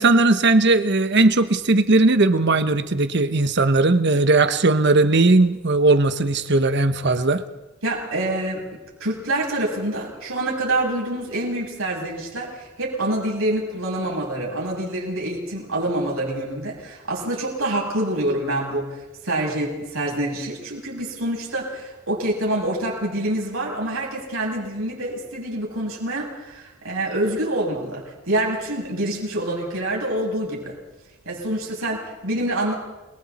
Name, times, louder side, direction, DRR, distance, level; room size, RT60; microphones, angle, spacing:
voice 1, 0.0-7.4, right 2 dB, 55° right, 10 dB, 1.1 m, -18 dB
voice 2, 7.8-8.7 9.0-19.0 19.2-30.8 31.3-32.7, right 1 dB, 80° right, -2 dB, 7.7 m, -26 dB
29.5 x 22.5 x 4.3 m, 1.0 s
head